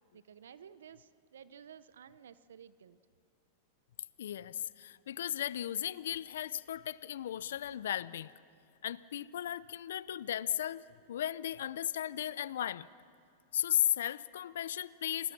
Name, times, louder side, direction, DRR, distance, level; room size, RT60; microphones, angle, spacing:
voice 1, 0.1-3.0, right 8 dB, 85° right, 15 dB, 0.8 m, -54 dB
voice 2, 4.2-8.3 8.8-12.9 13.5-15.3, left 11 dB, 75° left, 19 dB, 0.6 m, -35 dB
29.0 x 20.0 x 6.1 m, 2.5 s
hypercardioid pair, 110°, 0 cm